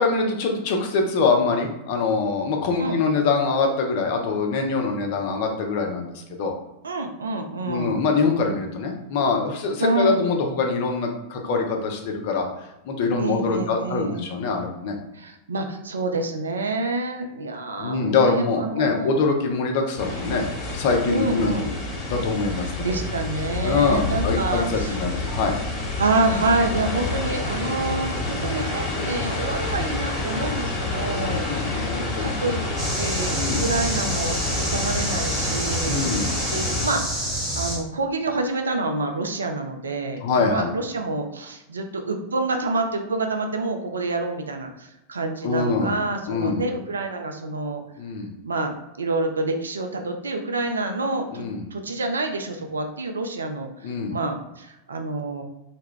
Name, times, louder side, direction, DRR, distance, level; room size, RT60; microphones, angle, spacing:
voice 1, 0.0-6.5 7.6-12.5 12.9-15.0 17.8-20.4 20.7-21.5 22.1-22.9 23.6-25.6 31.1-32.3 33.3-33.6 35.8-36.3 40.2-40.7 45.4-46.0 46.3-46.7 48.0-48.3 51.3-51.6 53.8-54.1, left 4 dB, 50° left, 2 dB, 0.5 m, -24 dB
voice 2, 6.8-8.0 9.8-10.2 13.2-14.2 15.1-19.2 21.1-21.7 22.8-25.0 26.0-32.6 33.0-36.0 36.5-47.8 48.4-55.4, right 2 dB, 70° right, 4 dB, 0.3 m, -27 dB
sound 1, 20.0-36.9, left 2 dB, 25° left, 0.9 m, -28 dB
sound 2, 32.8-37.8, right 1 dB, 20° right, 1.2 m, -28 dB
2.2 x 2.1 x 3.5 m, 0.92 s
figure-of-eight pair, 90°, 0 cm